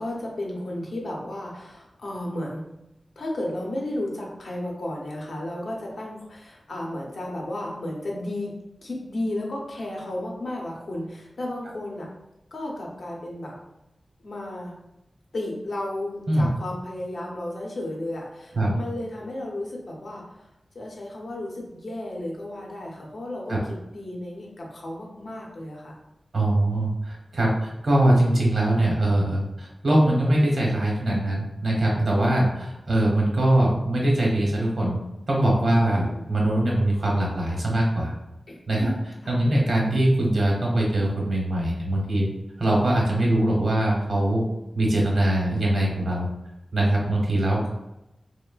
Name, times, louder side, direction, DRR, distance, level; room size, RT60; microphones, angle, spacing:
voice 1, 0.0-2.6 3.2-8.6 8.8-12.1 12.5-13.6 14.2-14.8 15.3-20.5 20.7-26.0 35.7-36.3 38.5-39.4, left 1 dB, 70° left, -2 dB, 0.7 m, -33 dB
voice 2, 26.3-35.0 35.3-38.1 38.7-38.9 39.3-42.3 42.6-44.4 44.7-46.3 46.7-47.7, right 1 dB, 70° right, -2 dB, 0.8 m, -22 dB
3.0 x 2.1 x 2.3 m, 0.91 s
wide cardioid pair, 85°, 0 cm